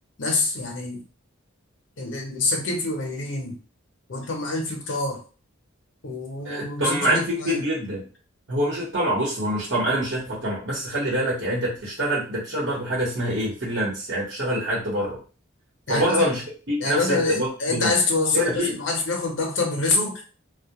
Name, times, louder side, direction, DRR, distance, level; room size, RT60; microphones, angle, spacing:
voice 1, 0.2-1.0 2.0-3.5 4.1-5.2 6.0-7.6 15.9-16.3 16.8-20.2, left 3 dB, 65° left, 1 dB, 0.7 m, -26 dB
voice 2, 6.4-8.0 8.5-15.2 15.9-17.9 18.3-18.7, right 1 dB, 65° right, -6 dB, 1.0 m, -25 dB
2.2 x 2.2 x 2.8 m, 0.37 s
head